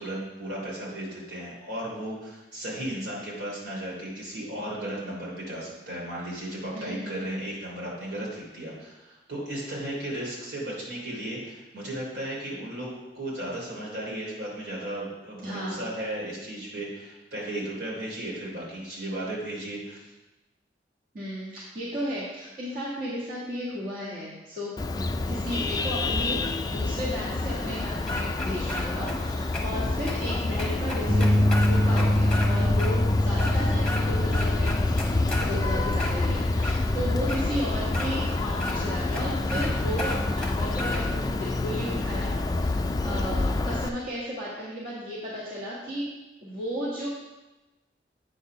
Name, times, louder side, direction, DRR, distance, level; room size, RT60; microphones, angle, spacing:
voice 1, 0.0-20.1, right 1 dB, 80° right, -4 dB, 3.0 m, -35 dB
voice 2, 6.7-7.2 15.4-15.9 21.1-31.3 31.7-46.1 46.4-47.1, equal, 55° right, -7 dB, 1.7 m, -34 dB
Vehicle horn car horn honking, 24.8-43.9, left 2 dB, 20° left, 0.3 m, -28 dB
sound 1, 28.1-29.2 29.5-29.6 30.1-30.2 30.6-32.5 32.8-32.9 33.3-34.0 34.3-35.5 35.9-36.8 37.3-37.4 37.9-38.1 38.6-38.8 39.1-39.2 39.5-39.7 40.0-41.0, left 1 dB, 5° left, 1.0 m, -33 dB
sound 2, 31.1-37.3, left 1 dB, 10° right, 0.7 m, -26 dB
8.3 x 4.3 x 5.8 m, 1.1 s
head